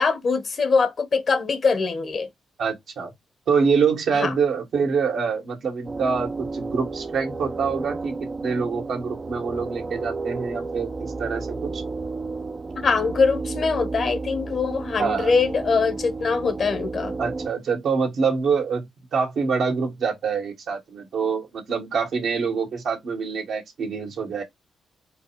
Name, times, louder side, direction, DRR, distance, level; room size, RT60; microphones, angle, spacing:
voice 1, 0.0-2.3 4.1-4.3 12.8-17.1, left 4 dB, 60° left, 1.3 m, -23 dB
voice 2, 2.6-3.1 3.5-11.8 15.0-15.3 17.2-24.4, right 5 dB, 75° right, 1.9 m, -25 dB
sound 1, 5.8-17.5, right 3 dB, 35° right, 0.6 m, -32 dB
4.6 x 2.4 x 4.7 m
cardioid pair, 65°, 0 cm